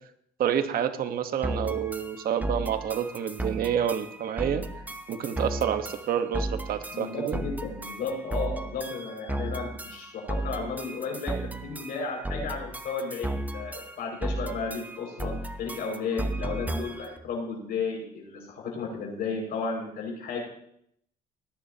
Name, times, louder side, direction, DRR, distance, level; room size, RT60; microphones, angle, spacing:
voice 1, 0.4-4.6 5.1-7.4, right 9 dB, 60° right, 8 dB, 1.3 m, -28 dB
sound 1, 1.4-17.2, right 1 dB, 10° right, 0.9 m, -35 dB
voice 2, 6.9-20.4, left 4 dB, 65° left, 0 dB, 5.9 m, -33 dB
19.0 x 10.0 x 2.9 m, 0.72 s
cardioid pair, 110°, 17 cm